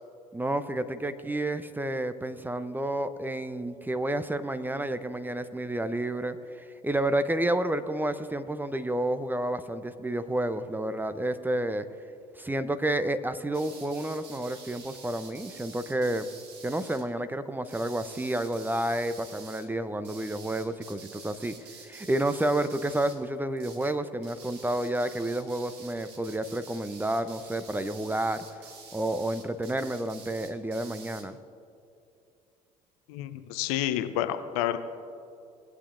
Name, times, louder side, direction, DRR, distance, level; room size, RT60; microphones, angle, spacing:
voice 1, 0.3-11.9 12.4-16.3 16.6-21.5 21.8-31.4, right 1 dB, 10° right, 11 dB, 0.7 m, -30 dB
sound 1, 13.5-17.1 17.6-19.7 20.0-23.3 23.6-24.0 24.2-31.3, right 5 dB, 60° right, 1.5 m, -48 dB
voice 2, 33.1-34.8, left 12 dB, 70° left, 10 dB, 0.7 m, -29 dB
19.0 x 8.3 x 2.5 m, 2.5 s
figure-of-eight pair, 55°, 20 cm